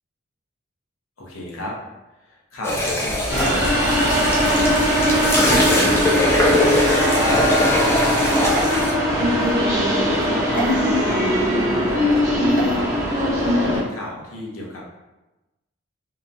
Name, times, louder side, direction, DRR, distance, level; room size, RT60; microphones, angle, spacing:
voice 1, 1.2-1.7 2.2-3.9 4.2-7.5 7.8-9.7 10.2-11.2 11.5-14.8, left 1 dB, 90° left, -3 dB, 0.7 m, -33 dB
sound 1, 2.6-8.9, left 1 dB, 10° left, 0.3 m, -22 dB
sound 2, 3.3-13.8, equal, 15° right, 0.7 m, -20 dB
sound 3, 8.5-9.5 10.5-10.7 12.5-12.8, right 3 dB, 40° left, 0.7 m, -31 dB
2.8 x 2.2 x 2.5 m, 1.0 s
head